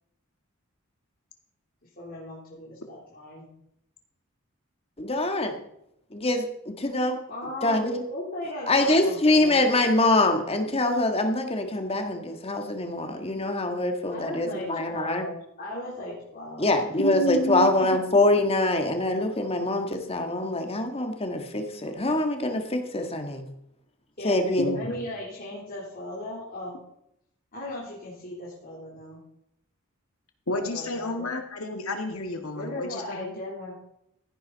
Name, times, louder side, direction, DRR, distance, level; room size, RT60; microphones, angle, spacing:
voice 1, 2.0-3.5 7.3-7.8 8.1-9.6 14.1-16.9 17.2-17.8 24.2-24.4 24.7-26.8 27.5-29.2 30.7-31.3 32.6-33.7, left 1 dB, 45° left, -7 dB, 3.7 m, -37 dB
voice 2, 5.0-5.5 6.1-7.2 7.6-8.0 8.7-15.2 16.6-23.4 24.2-24.7, left 2 dB, 30° left, 5 dB, 1.7 m, -24 dB
voice 3, 17.0-18.0 24.6-25.0 30.5-33.4, left 1 dB, 85° left, 4 dB, 2.2 m, -30 dB
15.5 x 10.0 x 4.1 m, 0.77 s
head